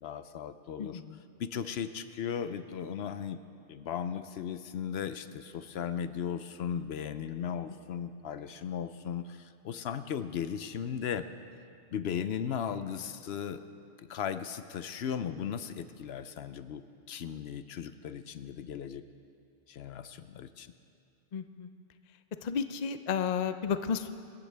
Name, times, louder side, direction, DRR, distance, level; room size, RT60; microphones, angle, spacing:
voice 1, 0.0-1.0 1.4-3.4 3.7-11.3 11.9-13.6 14.1-16.8 17.1-19.0 19.7-20.7, left 8 dB, 75° left, 11 dB, 0.9 m, -36 dB
voice 2, 0.8-1.2 7.7-7.8 21.3-21.7 22.4-24.1, left 7 dB, 50° left, 10 dB, 0.6 m, -32 dB
25.5 x 13.5 x 3.4 m, 2.6 s
omnidirectional pair, 1.1 m